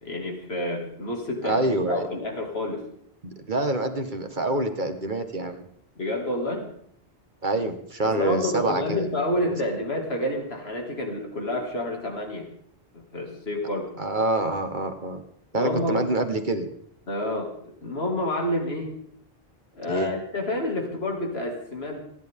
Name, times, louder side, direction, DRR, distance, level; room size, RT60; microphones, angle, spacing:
voice 1, 0.0-2.9 6.0-6.7 8.0-12.5 12.9-13.9 15.5-16.0 17.1-17.5 17.8-19.0 19.7-22.0, left 1 dB, 75° left, 1 dB, 2.7 m, -29 dB
voice 2, 1.4-2.1 3.2-5.6 7.4-9.1 9.4-9.5 14.0-15.2 15.5-16.7 19.9-20.1, right 2 dB, 50° right, 7 dB, 1.7 m, -26 dB
29.0 x 10.5 x 3.7 m, 0.67 s
omnidirectional pair, 1.1 m